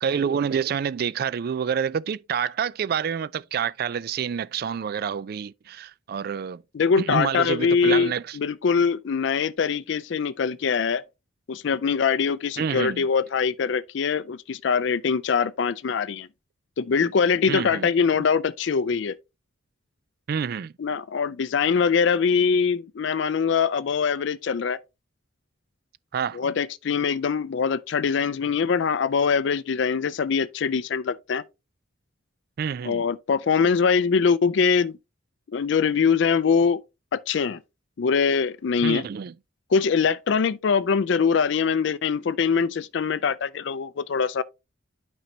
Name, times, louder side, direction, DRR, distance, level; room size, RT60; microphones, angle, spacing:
voice 1, 0.0-6.6 7.0-8.4 12.6-13.1 17.5-17.9 20.3-20.7 26.1-26.5 32.6-33.1 38.8-39.3, right 7 dB, 50° right, 0.3 m, -28 dB
voice 2, 6.7-11.0 11.5-16.3 16.8-19.2 20.8-24.8 26.3-31.4 32.8-35.0 35.5-36.8 37.1-37.6 38.0-39.1 39.7-44.4, left 6 dB, 60° left, 0.4 m, -23 dB
8.9 x 5.4 x 2.8 m
head